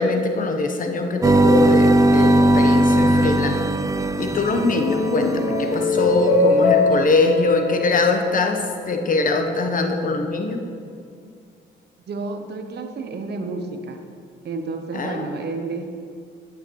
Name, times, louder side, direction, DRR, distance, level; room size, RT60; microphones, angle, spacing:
voice 1, 0.0-3.6 4.2-10.6 14.9-15.3, left 3 dB, 45° left, 5 dB, 0.9 m, -22 dB
sound 1, 1.2-5.5, right 1 dB, 15° right, 0.4 m, -18 dB
sound 2, 4.5-9.1, left 2 dB, 85° left, 1.1 m, -23 dB
voice 2, 12.1-14.0 14.4-15.9, right 3 dB, 55° right, 6 dB, 0.9 m, -30 dB
10.0 x 8.5 x 3.1 m, 2.2 s
cardioid pair, 90°, 20 cm